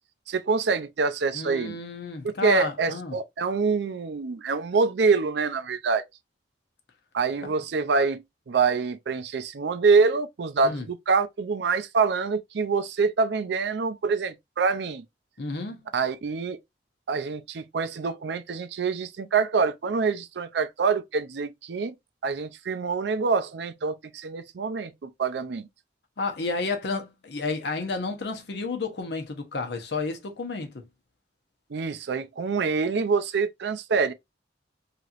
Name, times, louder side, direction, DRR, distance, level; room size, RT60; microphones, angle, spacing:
voice 1, 0.3-1.8 2.4-6.0 7.1-15.0 15.9-16.6 17.1-21.9 22.2-25.7 31.7-34.1, right 4 dB, 65° right, 0.5 m, -25 dB
voice 2, 1.3-3.2 7.4-7.5 10.6-10.9 15.4-15.8 26.2-30.9, left 3 dB, 65° left, 0.8 m, -31 dB
3.3 x 2.9 x 2.4 m
head